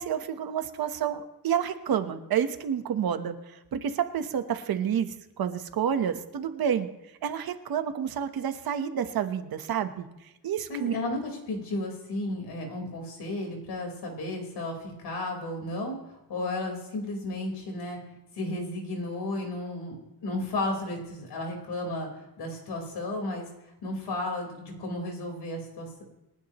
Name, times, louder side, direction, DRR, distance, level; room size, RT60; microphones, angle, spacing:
voice 1, 0.0-6.9 7.2-10.1 10.4-10.9, right 8 dB, 60° right, 8 dB, 1.2 m, -29 dB
voice 2, 10.7-16.0 16.3-18.0 18.4-22.1 22.4-23.4 23.8-26.0, left 2 dB, 75° left, 1 dB, 4.6 m, -33 dB
28.5 x 10.5 x 3.1 m, 0.92 s
wide cardioid pair, 150°, 40 cm